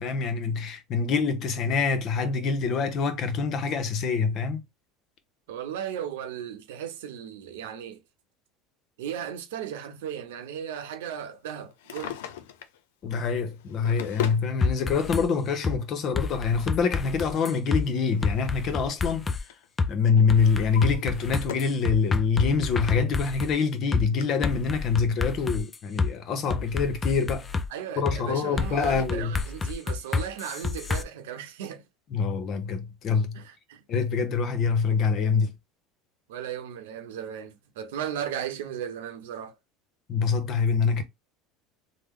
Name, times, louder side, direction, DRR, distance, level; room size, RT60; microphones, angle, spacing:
voice 1, 0.0-4.6 13.0-19.2 19.9-27.5 28.0-29.4 32.1-33.4 33.9-35.5 40.1-41.0, left 5 dB, 45° left, 0.9 m, -25 dB
voice 2, 5.5-8.0 9.0-12.2 27.7-31.8 33.3-33.8 36.3-39.6, right 9 dB, 85° right, 0.8 m, -36 dB
Drawer open or close, 11.7-12.8 13.5-14.5 15.6-15.7 17.4-19.0 19.3-19.7 20.2-21.8 22.3-22.4 23.1-23.2 23.4-23.5 24.2-24.3, left 11 dB, 85° left, 0.5 m, -39 dB
sound 1, 14.6-15.2 15.6-15.8 16.1-17.8 18.2-19.4 19.8-19.9 20.3-23.5 23.9-24.0 24.4-26.1 26.5-27.7 28.1-28.2 28.6-31.0, left 4 dB, 20° left, 0.4 m, -29 dB
3.2 x 2.0 x 3.6 m
supercardioid pair, 115°, 0 cm